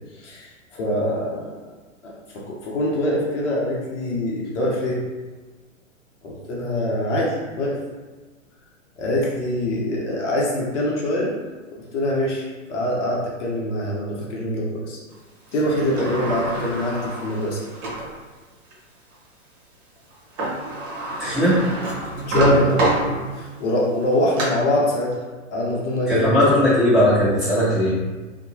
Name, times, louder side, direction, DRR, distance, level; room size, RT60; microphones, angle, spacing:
voice 1, 0.1-1.6 2.0-5.0 6.2-7.8 9.0-11.3 11.8-15.0 15.5-17.6 22.3-22.9 23.3-25.2 25.5-26.4, left 1 dB, 60° left, -4 dB, 0.7 m, -24 dB
Sliding door, 15.5-18.1 18.7-18.8 20.1-20.2 20.4-23.6 24.0-24.4, right 2 dB, 40° right, 1.1 m, -26 dB
voice 2, 21.2-21.6 26.1-28.0, left 1 dB, ahead, -14 dB, 1.2 m, -18 dB
2.8 x 2.2 x 2.6 m, 1.3 s
hypercardioid pair, 120°, 39 cm